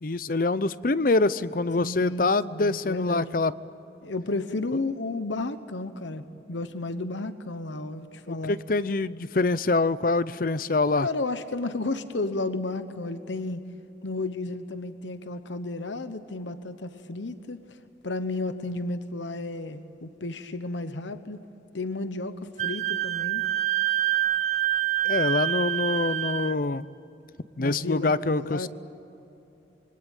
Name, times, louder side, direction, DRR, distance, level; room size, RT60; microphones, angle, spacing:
voice 1, 0.0-3.5 8.3-11.1 25.0-26.9 27.6-28.7, left 3 dB, 50° left, 16 dB, 0.6 m, -25 dB
voice 2, 1.8-3.3 4.0-8.6 11.0-13.6 14.0-17.8 18.0-21.4 21.7-23.4 27.6-28.7, left 2 dB, 85° left, 10 dB, 1.0 m, -33 dB
Wind instrument woodwind instrument, 22.6-26.5, right 13 dB, 40° right, 0.7 m, -26 dB
26.5 x 23.5 x 9.1 m, 3.0 s
head